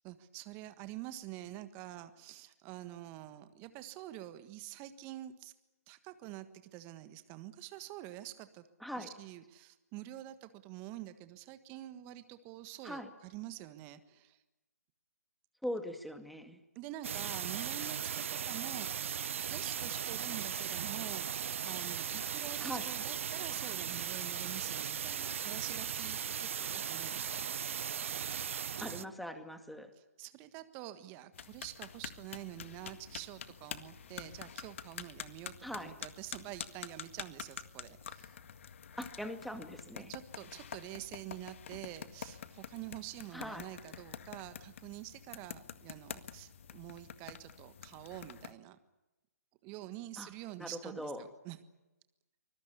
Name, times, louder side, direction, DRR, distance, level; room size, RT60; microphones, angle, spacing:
voice 1, 0.0-5.5 5.9-6.5 6.7-8.7 9.0-14.4 16.7-27.8 30.2-38.4 40.1-48.8 49.6-51.1 51.4-51.6, right 14 dB, 25° right, 11 dB, 1.5 m, -47 dB
voice 2, 15.6-16.6 22.6-22.9 28.8-29.9 35.6-35.9 39.0-40.1 43.3-43.6 50.2-50.3 50.6-51.3, equal, ahead, 7 dB, 2.2 m, -41 dB
sound 1, 17.0-29.0, right 8 dB, 50° right, 0.8 m, -37 dB
sound 2, 31.3-48.5, left 8 dB, 50° left, 1.8 m, -47 dB
25.0 x 21.5 x 8.4 m, 1.0 s
figure-of-eight pair, 140°, 9 cm